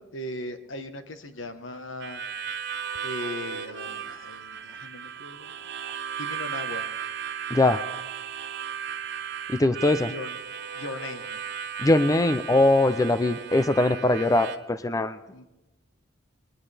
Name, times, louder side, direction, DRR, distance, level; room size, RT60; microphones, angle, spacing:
voice 1, 0.0-2.2 3.0-5.5 6.2-6.9 10.1-10.3 10.7-11.4 15.3-15.4, left 1 dB, 75° left, 8 dB, 1.3 m, -38 dB
Harmonica, 2.0-14.6, right 7 dB, 60° right, 1.0 m, -35 dB
voice 2, 7.5-7.8 9.5-10.1 11.8-15.2, left 2 dB, 20° left, 12 dB, 0.4 m, -21 dB
21.0 x 19.5 x 3.4 m, 1.0 s
head